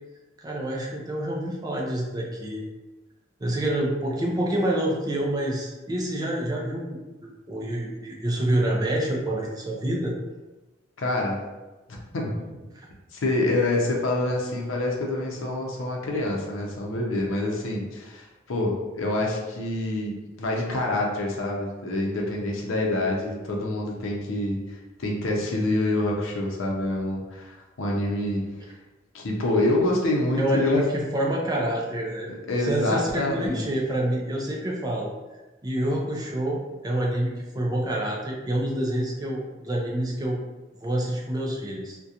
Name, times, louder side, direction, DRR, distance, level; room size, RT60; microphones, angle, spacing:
voice 1, 0.4-2.6 3.4-10.1 30.4-30.8 31.1-32.3 32.6-35.1 35.6-40.4 40.8-42.0, right 1 dB, 20° right, -2 dB, 0.3 m, -27 dB
voice 2, 11.0-11.4 11.9-12.3 13.1-20.1 20.4-24.6 25.0-28.4 29.1-30.8 32.5-33.7, left 1 dB, 75° left, -1 dB, 0.5 m, -26 dB
2.4 x 2.2 x 2.7 m, 1.1 s
head